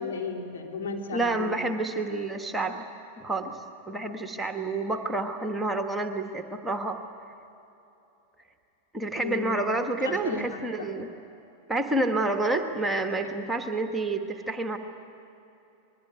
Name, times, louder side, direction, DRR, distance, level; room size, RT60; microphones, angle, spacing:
voice 1, 0.0-1.6 9.1-9.6 10.0-10.4 10.8-10.9 13.4-13.5, left 4 dB, 60° left, -1 dB, 4.0 m, -34 dB
voice 2, 1.1-2.8 3.2-3.6 3.9-7.0 8.9-11.1 11.7-14.8, right 2 dB, 5° right, 5 dB, 1.4 m, -29 dB
27.0 x 21.0 x 9.6 m, 2.9 s
figure-of-eight pair, 90°, 0 cm